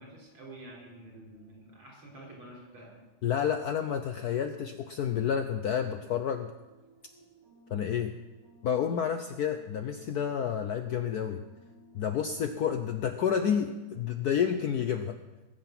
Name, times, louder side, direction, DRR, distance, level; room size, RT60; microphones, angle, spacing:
voice 1, 0.0-3.0, right 1 dB, 70° right, -3 dB, 5.0 m, -49 dB
voice 2, 3.2-6.5 7.7-8.1 8.6-11.4 11.9-15.2, left 8 dB, 80° left, 8 dB, 0.8 m, -30 dB
sound 1, 6.5-15.1, right 1 dB, 50° right, 3.6 m, -58 dB
19.5 x 7.7 x 6.0 m, 1.1 s
omnidirectional pair, 2.4 m